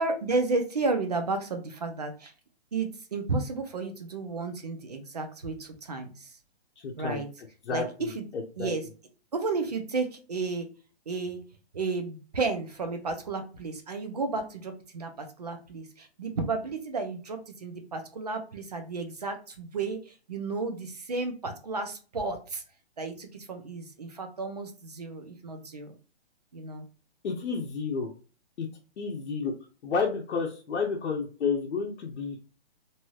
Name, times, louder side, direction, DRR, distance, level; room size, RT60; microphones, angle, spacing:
voice 1, 0.0-2.3 2.7-6.3 7.0-7.3 7.7-8.2 8.6-8.8 9.3-10.7 11.1-11.4 11.7-20.0 20.3-22.6 23.0-25.9 26.5-26.9, right 3 dB, 40° right, 6 dB, 0.4 m, -32 dB
voice 2, 6.8-7.2 7.7-8.7 27.2-28.1 28.6-28.7 29.0-29.5 29.8-32.4, left 5 dB, 85° left, -1 dB, 0.7 m, -31 dB
3.0 x 2.7 x 2.3 m, 0.36 s
hypercardioid pair, 175°, 33 cm